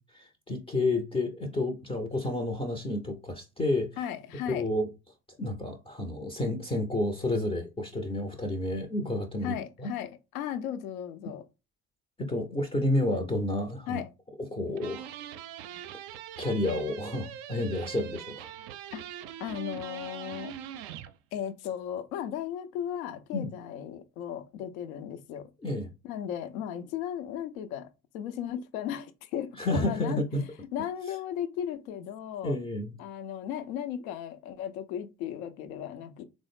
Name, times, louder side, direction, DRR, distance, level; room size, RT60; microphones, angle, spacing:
voice 1, 0.0-3.9 4.5-4.9 5.4-9.9 12.2-14.0 14.5-15.1 16.4-18.5 23.3-23.5 25.6-25.9 29.6-30.4 32.4-32.9, left 1 dB, 15° left, 0.5 m, -30 dB
voice 2, 4.0-4.7 9.4-11.4 13.9-14.1 18.9-19.0 19.4-20.6 21.3-25.5 26.0-30.2 30.7-32.6 33.0-36.2, left 9 dB, 65° left, 0.7 m, -36 dB
sound 1, 14.8-21.1, right 10 dB, 50° right, 0.5 m, -42 dB
3.7 x 2.0 x 3.3 m
figure-of-eight pair, 60°, 46 cm